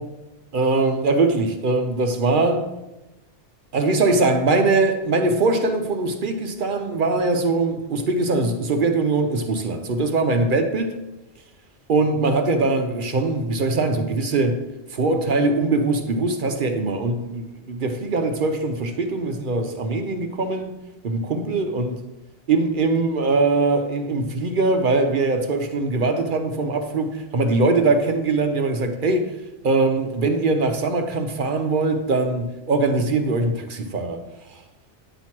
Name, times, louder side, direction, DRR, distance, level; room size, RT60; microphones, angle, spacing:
voice 1, 0.5-2.7 3.7-10.9 11.9-14.6 14.9-20.7 21.0-22.0 22.5-29.3 29.6-34.2 34.5-34.6, right 3 dB, 55° right, 0.7 m, -22 dB
8.9 x 3.0 x 5.8 m
omnidirectional pair, 1.2 m